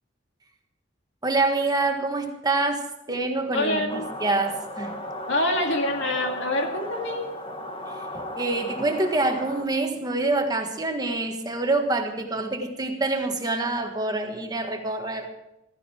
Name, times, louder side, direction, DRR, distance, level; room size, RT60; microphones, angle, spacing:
voice 1, 1.2-5.0 7.9-15.3, right 2 dB, 20° right, 4 dB, 1.6 m, -26 dB
voice 2, 3.5-4.1 5.3-7.3 7.6-7.7, left 1 dB, 65° left, 3 dB, 2.5 m, -26 dB
sound 1, 3.9-9.6, left 1 dB, 25° left, 1.6 m, -35 dB
15.5 x 15.0 x 4.5 m, 0.84 s
head